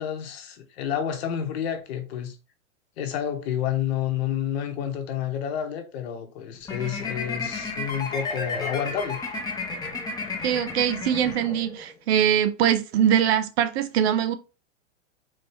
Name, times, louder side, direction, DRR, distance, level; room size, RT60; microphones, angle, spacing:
voice 1, 0.0-2.4 3.0-9.2, left 9 dB, 55° left, 1.0 m, -29 dB
sound 1, 6.6-11.9, left 3 dB, 10° left, 0.8 m, -32 dB
voice 2, 10.4-14.3, right 9 dB, 55° right, 0.6 m, -22 dB
3.7 x 2.8 x 3.3 m
hypercardioid pair, 120°, 38 cm